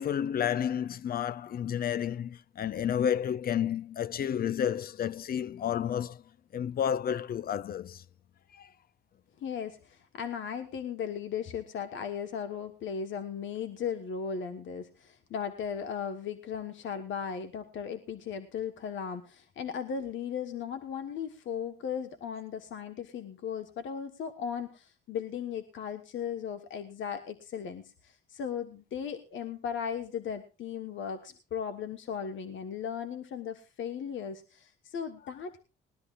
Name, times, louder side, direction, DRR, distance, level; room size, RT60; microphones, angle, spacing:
voice 1, 0.0-6.2 6.5-8.0 8.5-8.7, left 9 dB, 50° left, 0.5 m, -31 dB
voice 2, 9.4-35.6, left 7 dB, 70° left, 1.3 m, -37 dB
20.5 x 12.5 x 2.4 m
cardioid pair, 90°, 20 cm